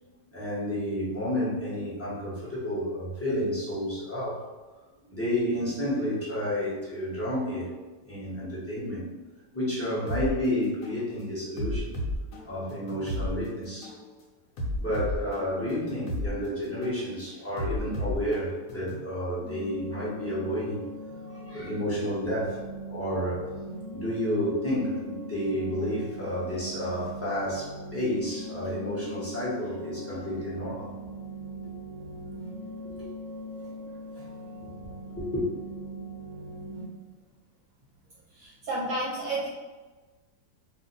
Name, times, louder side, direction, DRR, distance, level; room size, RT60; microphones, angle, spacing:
voice 1, 0.3-4.4 5.1-7.7 8.0-9.0 9.5-11.9 12.4-13.9 14.8-20.8 21.3-22.6 22.9-23.4 23.9-30.9 33.0-33.1 33.9-34.3 34.6-34.7 35.2-35.5, equal, 15° left, -9 dB, 0.6 m, -30 dB
sound 1, 10.1-10.3 10.8-11.0 11.6-13.3 13.8-14.0 14.6-16.3 16.8-17.0 17.6-19.1, left 1 dB, 65° left, 1.0 m, -33 dB
sound 2, 19.4-36.8, right 1 dB, 40° right, 0.8 m, -41 dB
voice 2, 38.3-39.5, right 2 dB, 70° right, -5 dB, 1.0 m, -31 dB
2.5 x 2.4 x 3.9 m, 1.3 s
omnidirectional pair, 1.8 m